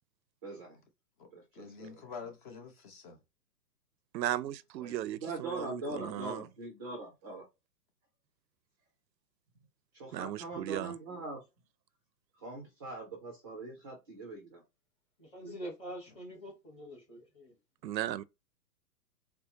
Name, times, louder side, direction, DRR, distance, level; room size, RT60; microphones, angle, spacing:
voice 1, 0.4-0.8 1.3-2.0 4.8-7.4 9.9-11.4 12.4-14.6, right 2 dB, 15° right, 0.4 m, -42 dB
voice 2, 1.2-3.2 16.1-16.2, left 5 dB, 30° left, 0.8 m, -47 dB
voice 3, 4.1-6.4 10.1-10.9 17.8-18.2, right 12 dB, 90° right, 0.6 m, -36 dB
voice 4, 15.2-17.5, equal, 10° left, 1.1 m, -45 dB
4.4 x 2.0 x 2.8 m
hypercardioid pair, 150°, 50 cm